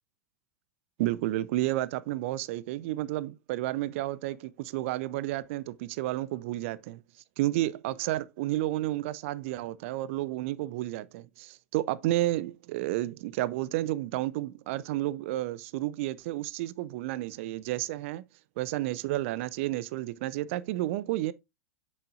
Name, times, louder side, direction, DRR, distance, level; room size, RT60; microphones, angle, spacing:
voice 1, 1.0-7.0 7.4-18.2 18.6-21.3, right 16 dB, 55° right, 0.5 m, -31 dB
8.2 x 6.3 x 2.4 m
figure-of-eight pair, 90°, 8 cm